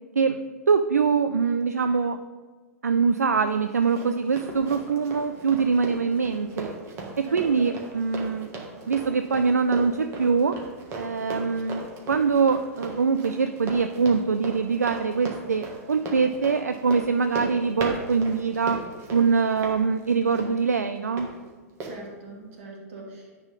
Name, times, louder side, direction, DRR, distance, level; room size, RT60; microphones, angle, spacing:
voice 1, 0.7-2.2 2.8-6.8 7.2-8.5 8.9-10.6 10.9-18.8 19.1-21.3, right 5 dB, 75° right, 9 dB, 0.4 m, -23 dB
Run, 3.5-21.3 21.8-21.9, right 2 dB, 30° right, 1.7 m, -38 dB
voice 2, 7.2-7.7 20.1-20.5 21.9-23.4, right 2 dB, 55° right, -2 dB, 2.5 m, -41 dB
10.5 x 4.2 x 5.2 m, 1.4 s
figure-of-eight pair, 100°, 9 cm